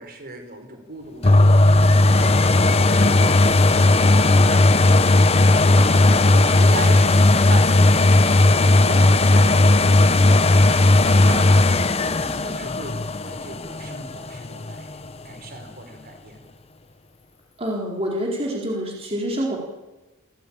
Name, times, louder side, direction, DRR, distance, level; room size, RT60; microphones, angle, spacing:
voice 1, 0.0-5.4 5.7-10.3 10.7-11.8 12.1-15.0 15.2-16.5, right 2 dB, 45° right, 5 dB, 4.6 m, -37 dB
sound 1, 1.2-14.9 15.5-15.6, left 2 dB, 30° left, 0.9 m, -16 dB
voice 2, 17.6-19.6, equal, 30° right, -2 dB, 4.2 m, -26 dB
28.5 x 15.5 x 8.8 m, 1.1 s
head